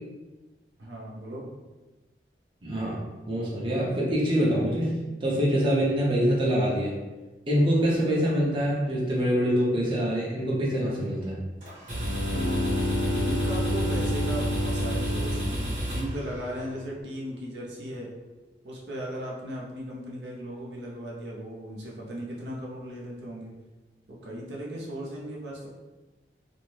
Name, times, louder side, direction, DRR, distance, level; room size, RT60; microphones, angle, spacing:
voice 1, 0.8-1.5 13.1-18.1 18.6-23.5 24.1-25.7, right 1 dB, 85° right, -4 dB, 0.6 m, -37 dB
voice 2, 2.6-3.0 3.3-4.9 5.2-7.0 7.5-11.4, equal, 30° right, -5 dB, 0.5 m, -25 dB
sound 1, 11.6-16.8, right 1 dB, 45° right, 0.9 m, -32 dB
Bowed string instrument, 11.9-16.8, left 1 dB, 70° left, 0.3 m, -31 dB
sound 2, 12.3-17.7, left 2 dB, 50° left, 0.9 m, -38 dB
2.5 x 2.0 x 3.0 m, 1.2 s
head